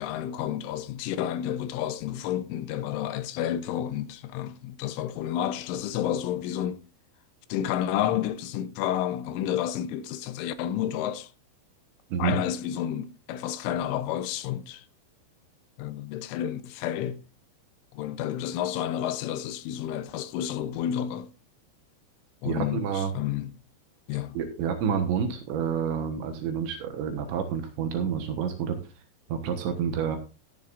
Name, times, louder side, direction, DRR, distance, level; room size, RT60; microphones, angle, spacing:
voice 1, 0.0-6.8 7.5-11.3 12.2-14.8 15.8-17.2 17.9-21.3 22.4-23.5 24.1-24.4, left 11 dB, 80° left, 3.2 m, -30 dB
voice 2, 22.4-23.1 24.4-28.8 29.3-30.2, right 7 dB, 75° right, 3.4 m, -28 dB
14.5 x 10.5 x 2.5 m
omnidirectional pair, 5.6 m